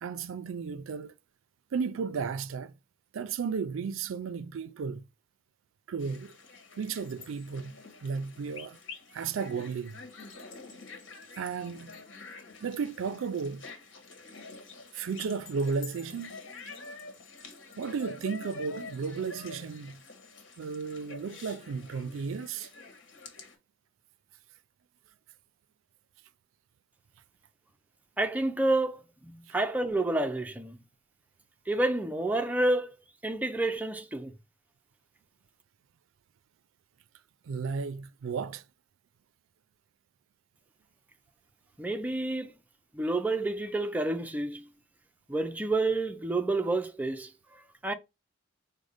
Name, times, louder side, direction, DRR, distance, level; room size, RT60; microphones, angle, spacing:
voice 1, 0.0-1.1 1.7-2.7 3.1-5.0 5.9-6.4 6.8-8.8 9.1-10.0 11.4-12.0 12.6-13.7 14.9-16.4 17.8-20.0 20.6-22.7 37.4-38.6, right 5 dB, 85° right, 0.4 m, -34 dB
sound 1, 6.0-23.6, left 3 dB, 70° left, 1.3 m, -47 dB
voice 2, 28.2-29.0 29.5-30.8 31.7-33.0 33.2-34.3 41.8-42.5 42.9-44.6 45.3-47.3 47.8-47.9, right 2 dB, 10° right, 0.4 m, -29 dB
5.2 x 2.1 x 4.9 m
head